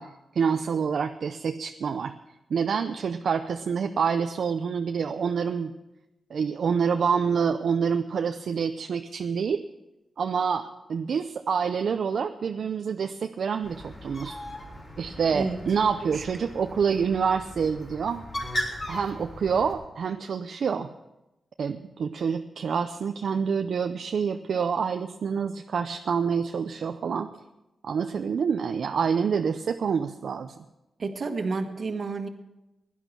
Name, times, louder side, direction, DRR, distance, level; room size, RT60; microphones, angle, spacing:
voice 1, 0.0-2.2 2.5-5.7 6.3-9.6 10.2-14.4 15.0-18.2 18.9-20.9 21.6-27.3 27.8-30.5, right 6 dB, 65° right, 7 dB, 0.6 m, -27 dB
Bird, 13.6-19.7, left 1 dB, 40° left, 4.1 m, -37 dB
voice 2, 31.0-32.3, right 3 dB, 50° right, 6 dB, 1.5 m, -30 dB
16.5 x 11.0 x 6.1 m, 0.97 s
wide cardioid pair, 135°, 0 cm